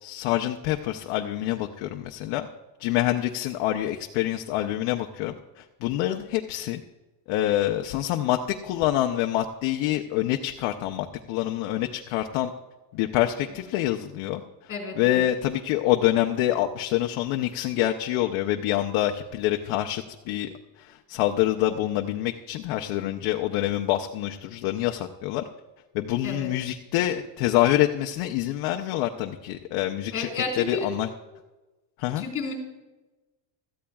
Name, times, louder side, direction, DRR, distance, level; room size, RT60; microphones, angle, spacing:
voice 1, 0.0-2.5 2.8-6.8 7.3-12.5 12.9-14.4 15.0-20.5 20.8-25.4 25.9-31.1 32.0-32.2, left 13 dB, 85° left, 4 dB, 0.8 m, -26 dB
voice 2, 14.7-15.3 26.2-26.6 30.1-30.9 32.2-32.5, left 4 dB, 30° left, 2 dB, 4.1 m, -31 dB
17.0 x 14.0 x 2.3 m, 1.1 s
cardioid pair, 165°, 47 cm